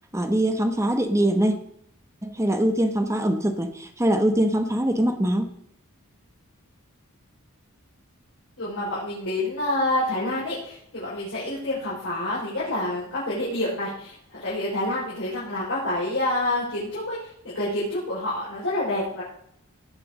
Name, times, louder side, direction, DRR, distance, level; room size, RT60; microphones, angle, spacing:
voice 1, 0.1-1.6 2.2-5.5, right 1 dB, 15° right, 7 dB, 1.1 m, -23 dB
voice 2, 8.6-17.2 17.4-19.2, left 1 dB, 60° left, -9 dB, 4.7 m, -28 dB
17.5 x 6.1 x 4.9 m, 0.70 s
head